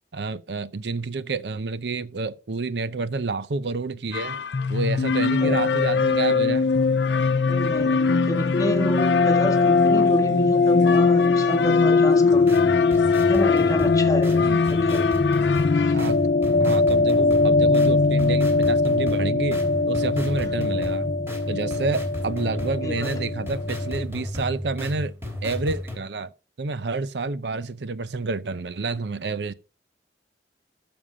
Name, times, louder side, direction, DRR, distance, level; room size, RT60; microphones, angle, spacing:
voice 1, 0.1-4.4 4.7-6.7 14.4-14.6 15.9-16.2 16.6-21.1 21.5-25.1 25.4-26.3 26.6-29.5, right 3 dB, 75° right, 0.6 m, -29 dB
sound 1, 4.1-15.9, left 7 dB, 85° left, 0.7 m, -33 dB
sound 2, 4.5-24.0, left 4 dB, 50° left, 0.4 m, -21 dB
voice 2, 7.5-12.6 13.3-15.1 15.8-16.0 20.4-20.6 22.8-23.2, right 1 dB, 20° left, 1.4 m, -29 dB
sound 3, 12.3-26.0, left 1 dB, 15° right, 3.3 m, -33 dB
12.5 x 7.1 x 4.9 m
head